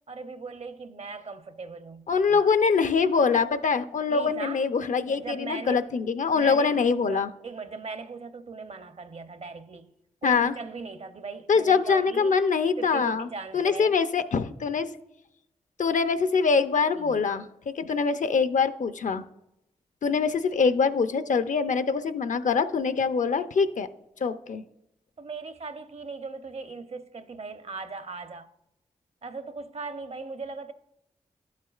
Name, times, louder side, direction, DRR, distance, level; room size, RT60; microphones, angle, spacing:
voice 1, 0.1-2.5 4.1-4.7 5.1-5.8 6.3-9.9 10.2-12.4 12.8-13.9 16.9-17.5 25.2-28.5 29.2-30.7, right 4 dB, 50° right, 0.7 m, -39 dB
voice 2, 2.1-7.3 10.2-10.5 11.5-13.3 13.5-14.9 15.8-19.2 20.0-23.9 24.2-24.6, left 5 dB, 60° left, 0.5 m, -24 dB
11.5 x 7.3 x 2.4 m
cardioid pair, 40°, 14 cm